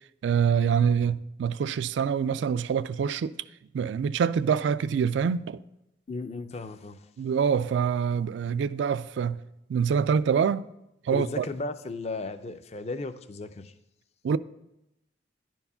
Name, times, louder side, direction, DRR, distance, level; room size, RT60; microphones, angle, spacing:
voice 1, 0.2-3.3 3.7-5.6 7.2-9.4 9.7-10.7 11.0-11.5 14.2-14.4, right 7 dB, 75° right, 0.3 m, -25 dB
voice 2, 6.1-7.1 11.1-13.7, left 3 dB, 35° left, 0.4 m, -35 dB
10.5 x 4.6 x 5.5 m
head